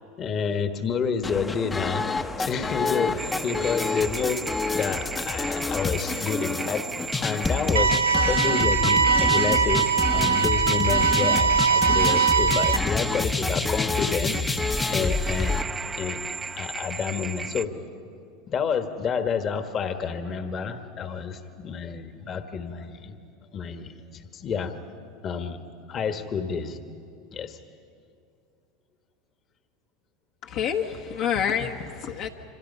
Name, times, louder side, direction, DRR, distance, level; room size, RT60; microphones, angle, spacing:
voice 1, 0.2-2.0 2.4-4.4 4.7-7.9 8.2-9.9 10.1-15.6 15.9-16.2 16.5-17.7 18.5-23.1 23.5-24.7 25.2-25.6 25.9-26.8 27.3-27.6, left 6 dB, 40° left, 8 dB, 1.6 m, -29 dB
sound 1, 1.2-15.6, left 3 dB, 20° left, 1.0 m, -28 dB
sound 2, 3.2-17.7, right 4 dB, 20° right, 0.8 m, -36 dB
sound 3, 7.8-12.8, right 6 dB, 90° right, 0.6 m, -21 dB
voice 2, 30.4-32.3, left 8 dB, 60° left, 1 dB, 1.4 m, -28 dB
27.5 x 25.5 x 5.6 m, 2.4 s
hypercardioid pair, 90°, 0 cm